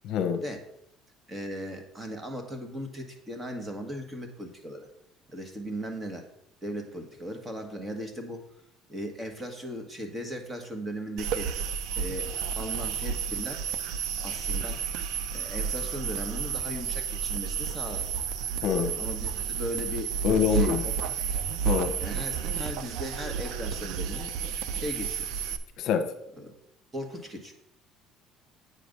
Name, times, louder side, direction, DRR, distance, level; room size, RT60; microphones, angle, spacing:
voice 1, 0.0-0.4 18.6-19.0 20.2-20.8 21.7-22.0 25.8-26.1, left 7 dB, 65° left, 7 dB, 0.8 m, -25 dB
voice 2, 1.3-4.9 5.3-6.3 6.6-8.4 8.9-11.5 12.0-13.6 14.1-14.8 15.3-18.1 18.9-20.1 20.5-20.9 21.2-21.3 22.0-24.3 24.7-25.3 26.4-26.5 26.9-27.5, equal, 15° right, 4 dB, 1.6 m, -37 dB
sound 1, 11.2-25.6, right 7 dB, 75° right, 0.6 m, -31 dB
8.5 x 5.1 x 5.3 m, 0.76 s
cardioid pair, 120°, 0 cm